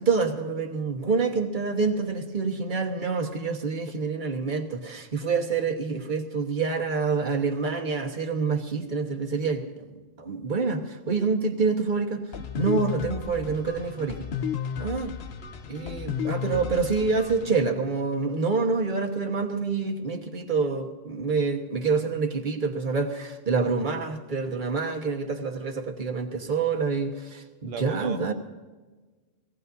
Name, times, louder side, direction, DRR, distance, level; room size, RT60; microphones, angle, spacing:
voice 1, 0.0-12.2 12.6-14.2 14.8-15.1 15.7-28.3, right 4 dB, 40° right, 3 dB, 1.5 m, -27 dB
sound 1, 12.3-17.5, left 7 dB, 55° left, 1.0 m, -33 dB
voice 2, 27.6-28.3, right 6 dB, 80° right, 7 dB, 1.0 m, -37 dB
24.0 x 18.0 x 2.7 m, 1.3 s
omnidirectional pair, 1.3 m